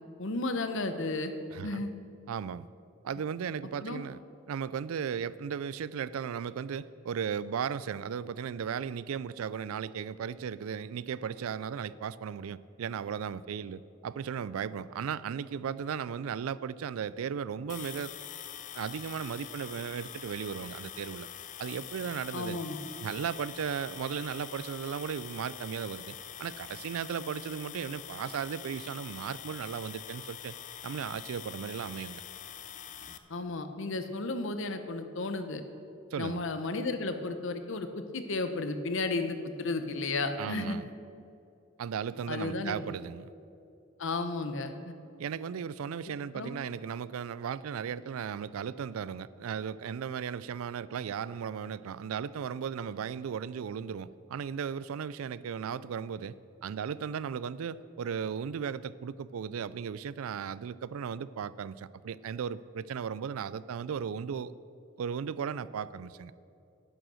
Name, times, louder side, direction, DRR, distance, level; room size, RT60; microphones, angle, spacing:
voice 1, 0.2-1.3 1.6-1.9 3.8-4.0 22.3-22.8 33.3-35.6 36.2-40.8 42.3-42.8 44.0-45.0 46.3-46.6, left 3 dB, 65° left, 8 dB, 0.9 m, -33 dB
voice 2, 1.5-1.8 2.3-2.7 3.0-4.2 4.5-18.1 18.7-21.3 21.6-22.6 23.0-30.5 30.8-32.2 36.1-36.4 40.4-40.9 41.8-43.3 45.2-56.4 56.6-64.5 65.0-66.3, right 7 dB, 85° right, 18 dB, 0.4 m, -36 dB
sound 1, 17.7-33.2, left 10 dB, 40° left, 0.6 m, -45 dB
11.0 x 9.0 x 6.3 m, 2.7 s
head